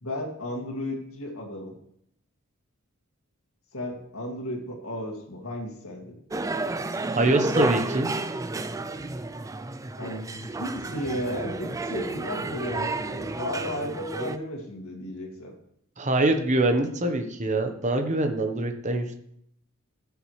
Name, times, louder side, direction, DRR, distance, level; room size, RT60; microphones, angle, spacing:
voice 1, 0.0-1.7 3.7-6.1 10.0-15.5, left 1 dB, 80° left, 1 dB, 2.2 m, -34 dB
sound 1, 6.3-14.4, right 2 dB, 15° right, 0.4 m, -31 dB
voice 2, 7.1-8.1 16.0-19.1, right 2 dB, 35° right, 5 dB, 1.0 m, -24 dB
15.0 x 6.9 x 3.2 m, 0.72 s
head